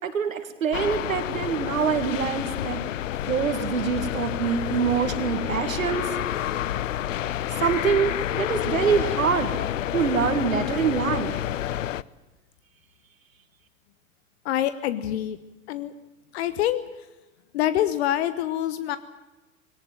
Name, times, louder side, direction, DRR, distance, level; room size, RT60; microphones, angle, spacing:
voice 1, 0.0-2.8 3.3-6.1 7.5-9.5 9.9-11.4, right 6 dB, 70° right, 8 dB, 2.2 m, -25 dB
sound 1, 0.7-12.0, left 12 dB, 65° left, 0.7 m, -29 dB
voice 2, 14.4-15.4 15.7-15.9 16.3-16.8 17.5-19.0, left 12 dB, 50° left, 13 dB, 1.1 m, -25 dB
21.0 x 18.5 x 9.0 m, 1.1 s
figure-of-eight pair, 90°, 41 cm